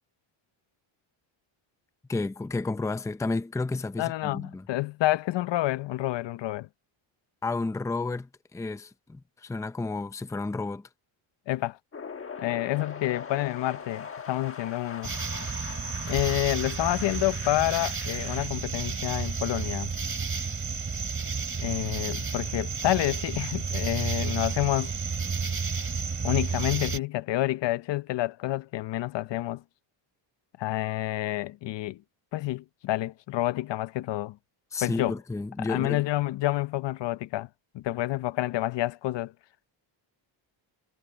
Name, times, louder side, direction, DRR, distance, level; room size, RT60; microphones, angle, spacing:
voice 1, 2.1-4.6 7.4-10.9 34.7-36.0, left 3 dB, 5° left, 0.6 m, -31 dB
voice 2, 4.0-6.7 11.5-11.8 12.4-15.1 16.1-19.9 21.6-24.9 26.2-29.6 30.6-32.0 32.3-34.4 34.8-35.1 35.6-37.5 37.7-39.3, left 16 dB, 60° left, 0.7 m, -28 dB
sound 1, 11.9-18.5, left 6 dB, 25° left, 1.3 m, -41 dB
sound 2, 15.0-27.0, right 5 dB, 25° right, 3.1 m, -31 dB
cardioid pair, 150°, 49 cm